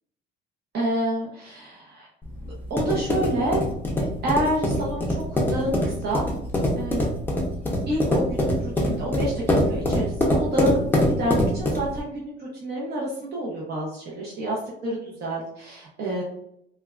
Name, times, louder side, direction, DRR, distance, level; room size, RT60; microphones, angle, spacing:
voice 1, 0.7-2.1 2.4-3.6 4.0-6.2 6.8-7.1 7.9-16.2, right 1 dB, 55° right, -4 dB, 0.7 m, -28 dB
sound 1, 2.2-12.0, left 1 dB, 10° left, 0.5 m, -24 dB
3.3 x 2.2 x 2.3 m, 0.74 s
cardioid pair, 155°, 20 cm